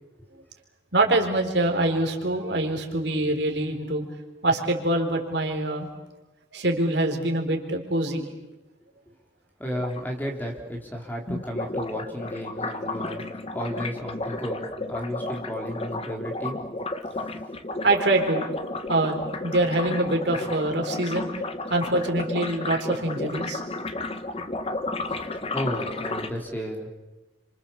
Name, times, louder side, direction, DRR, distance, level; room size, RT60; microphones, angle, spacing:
voice 1, 0.9-4.1 4.4-5.9 6.5-8.3 17.8-21.3 21.7-23.6, right 2 dB, 65° right, 2 dB, 4.1 m, -24 dB
voice 2, 9.6-16.6 25.5-26.9, equal, 10° left, 1 dB, 3.9 m, -33 dB
sound 1, 9.7-10.0 11.3-26.3, left 2 dB, 30° left, 1.4 m, -33 dB
29.0 x 26.0 x 7.3 m, 1.1 s
head